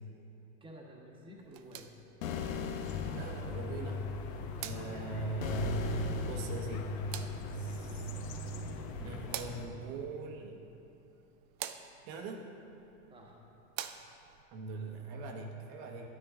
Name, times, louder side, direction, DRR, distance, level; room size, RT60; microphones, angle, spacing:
voice 1, 0.6-1.9 7.7-8.1 13.1-13.4 15.9-16.1, equal, 10° right, -1 dB, 1.4 m, -52 dB
sound 1, 1.4-14.4, right 11 dB, 75° right, 0.7 m, -49 dB
sound 2, 2.2-3.6 5.4-6.8, left 6 dB, 85° left, 1.0 m, -38 dB
sound 3, 2.8-9.7, left 3 dB, 55° left, 1.0 m, -40 dB
voice 2, 3.1-4.0 4.6-7.0 7.5-8.0 9.0-10.6 12.1-12.4 14.5-16.1, right 3 dB, 50° right, 2 dB, 1.3 m, -40 dB
10.5 x 9.8 x 3.7 m, 2.8 s
supercardioid pair, 135°, 40 cm